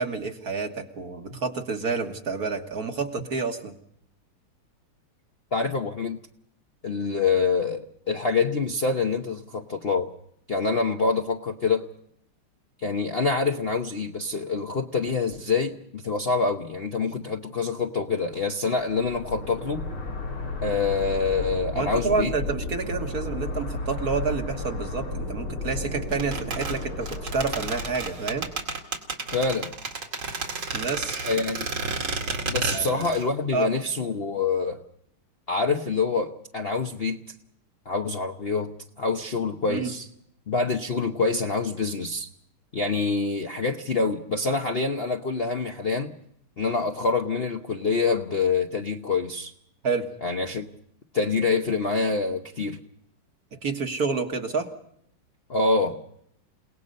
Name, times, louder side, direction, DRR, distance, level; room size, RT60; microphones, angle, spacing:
voice 1, 0.0-3.8 21.7-28.5 30.7-31.2 32.7-33.1 33.5-33.7 39.7-39.9 49.8-50.1 53.5-54.7, right 4 dB, 45° right, 4 dB, 1.9 m, -29 dB
voice 2, 5.5-6.2 6.8-10.1 10.5-11.8 12.8-19.9 20.6-22.3 29.3-29.7 31.2-31.7 32.4-34.8 35.5-37.2 37.9-40.1 40.5-42.3 42.7-46.1 46.6-49.5 50.2-50.7 51.1-52.8 55.5-56.0, left 4 dB, 45° left, 4 dB, 0.8 m, -26 dB
sound 1, 18.8-28.6, left 2 dB, 80° left, 5.3 m, -33 dB
sound 2, 26.1-33.3 33.5-33.6, right 4 dB, 70° right, 3.2 m, -31 dB
29.5 x 18.5 x 5.4 m, 0.72 s
omnidirectional pair, 2.3 m